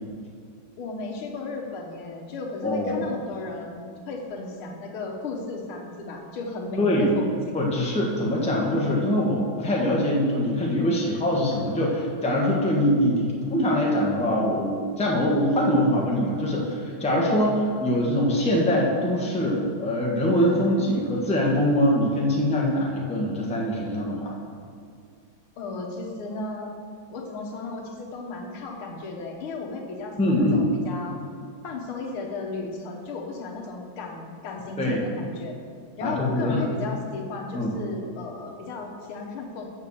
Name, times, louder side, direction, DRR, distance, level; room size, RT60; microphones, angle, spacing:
voice 1, 0.8-7.6 25.6-26.7 27.1-31.2 31.6-35.6 36.0-39.7, left 3 dB, 85° left, 1 dB, 2.0 m, -34 dB
voice 2, 2.6-3.1 6.8-7.1 7.5-24.3 30.2-30.7 34.8-35.0 36.0-36.6 37.5-37.7, equal, 5° left, -3 dB, 1.0 m, -23 dB
7.4 x 7.1 x 6.9 m, 2.2 s
omnidirectional pair, 2.3 m